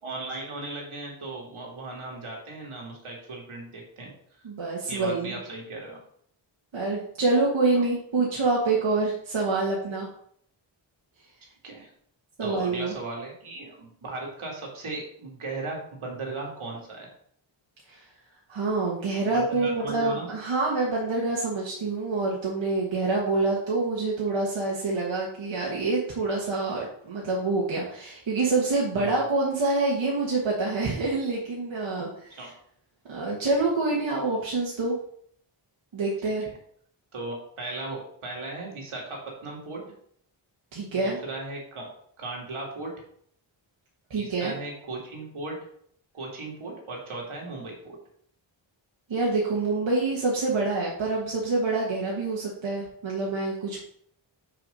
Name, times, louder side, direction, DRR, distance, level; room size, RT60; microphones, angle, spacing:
voice 1, 0.0-4.1 4.9-6.0 7.6-7.8 11.6-11.9 12.4-17.1 19.3-20.3 28.9-29.2 32.4-32.5 36.4-36.5 37.1-39.8 40.9-41.9 42.2-42.9 44.1-45.5 46.1-48.0, right 2 dB, 85° right, -1 dB, 2.4 m, -37 dB
voice 2, 4.4-5.4 6.7-10.1 12.4-12.9 17.9-18.0 18.5-32.5 33.1-35.0 35.9-36.4 40.7-41.2 44.1-44.5 49.1-53.8, right 3 dB, 70° right, -4 dB, 1.7 m, -26 dB
6.1 x 4.9 x 5.5 m, 0.64 s
wide cardioid pair, 160°, 48 cm